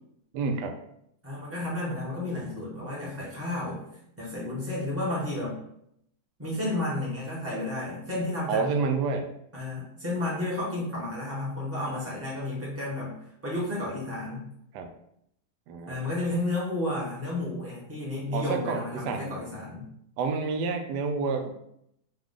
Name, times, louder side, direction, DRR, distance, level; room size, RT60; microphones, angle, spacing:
voice 1, 0.3-0.8 8.5-9.3 14.7-14.9 15.7-16.1 18.3-19.3 20.2-21.5, right 4 dB, 90° right, 4 dB, 1.2 m, -29 dB
voice 2, 1.2-3.8 4.2-5.5 6.4-8.6 9.5-13.1 13.4-14.5 15.9-19.8, left 1 dB, 10° right, -6 dB, 1.3 m, -32 dB
3.6 x 3.1 x 3.6 m, 0.75 s
omnidirectional pair, 1.7 m